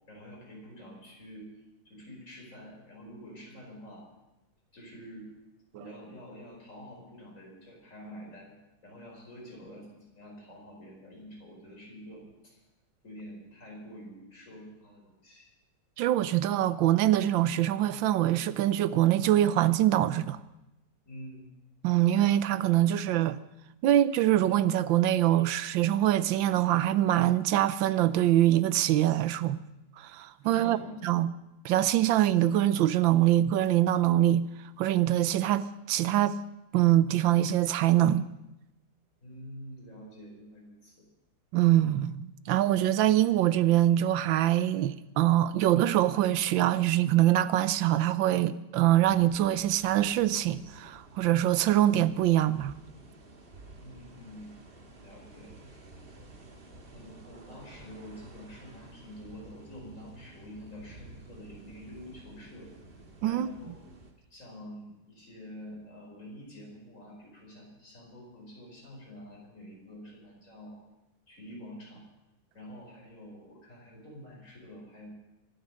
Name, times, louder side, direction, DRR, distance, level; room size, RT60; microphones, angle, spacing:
voice 1, 0.1-1.5 1.9-4.1 4.7-5.3 5.7-12.6 13.0-15.5 21.1-21.5 30.4-31.0 39.2-41.1 53.8-54.6 55.0-55.7 56.9-62.7 63.2-63.7 64.3-70.8 71.3-72.0 72.5-75.1, equal, 40° left, 5.2 m, -47 dB
voice 2, 16.0-20.4 21.8-23.4 23.8-29.6 30.0-30.8 31.0-31.3 31.6-34.4 34.8-36.4 36.7-38.3 41.5-52.7 63.2-63.5, right 13 dB, 90° right, 1.4 m, -24 dB
sound 1, 49.0-64.1, right 2 dB, 30° right, 1.8 m, -52 dB
24.5 x 9.3 x 6.3 m
omnidirectional pair, 2.0 m